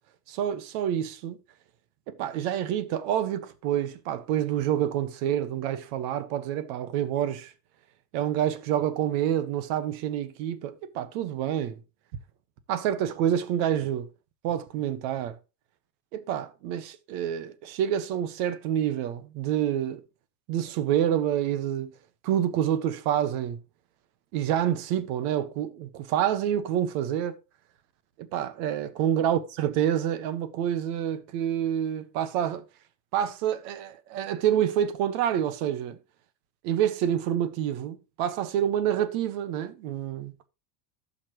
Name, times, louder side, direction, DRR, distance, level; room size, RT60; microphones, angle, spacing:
voice 1, 0.3-1.4 2.1-7.5 8.1-11.8 12.7-14.1 14.4-15.4 16.1-20.0 20.5-21.9 22.2-23.6 24.3-27.3 28.2-32.6 33.1-36.0 36.6-40.3, right 10 dB, 65° right, 1.5 m, -27 dB
16.5 x 5.8 x 3.1 m
supercardioid pair, 135°, 48 cm